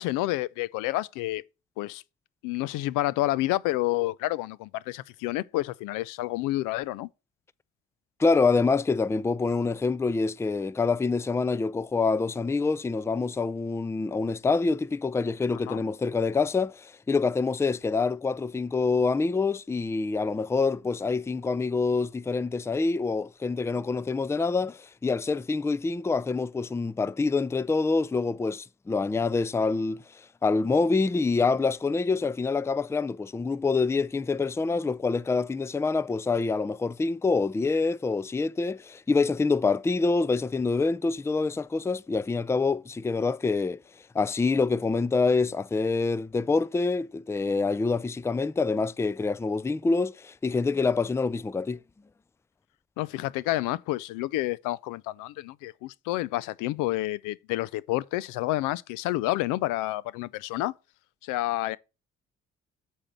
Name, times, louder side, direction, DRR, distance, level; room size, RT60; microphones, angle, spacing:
voice 1, 0.0-1.4 1.8-2.0 2.4-7.1 15.7-15.8 53.0-60.7 61.2-61.8, left 17 dB, 75° left, 0.5 m, -29 dB
voice 2, 8.2-43.8 44.1-51.8, left 4 dB, 10° left, 0.4 m, -26 dB
8.7 x 4.4 x 6.1 m
hypercardioid pair, 50°, 32 cm